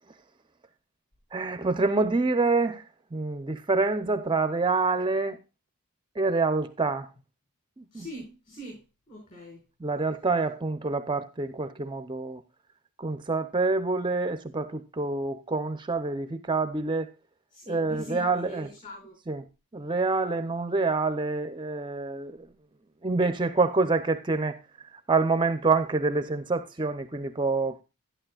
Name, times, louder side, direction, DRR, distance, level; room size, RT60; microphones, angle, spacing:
voice 1, 1.3-2.8 3.1-5.4 6.2-7.1 7.8-8.0 9.8-12.4 13.0-17.1 17.7-18.7 19.3-19.4 19.7-22.5 23.0-24.6 25.1-27.8, right 3 dB, 20° right, 0.6 m, -27 dB
voice 2, 7.9-9.6 17.5-19.1, equal, 35° left, 5.1 m, -43 dB
11.5 x 11.5 x 2.3 m
head